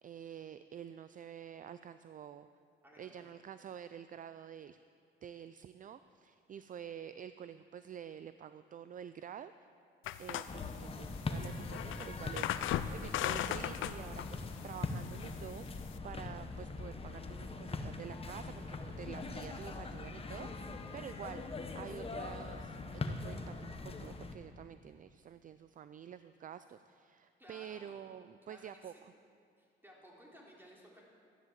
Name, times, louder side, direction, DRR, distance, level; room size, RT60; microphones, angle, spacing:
voice 1, 0.0-2.5 3.0-4.8 5.2-9.5 10.2-12.5 12.9-21.4 21.7-23.6 23.8-29.1, right 9 dB, 40° right, 12 dB, 0.4 m, -48 dB
voice 2, 2.8-3.3 27.4-28.0 28.5-29.0 29.6-31.0, equal, 10° right, -3 dB, 3.6 m, -57 dB
sound 1, 10.0-16.0, left 11 dB, 80° left, 0.6 m, -39 dB
sound 2, 10.5-24.4, left 3 dB, 30° left, 1.1 m, -42 dB
13.0 x 10.0 x 7.6 m, 2.4 s
cardioid pair, 90°, 20 cm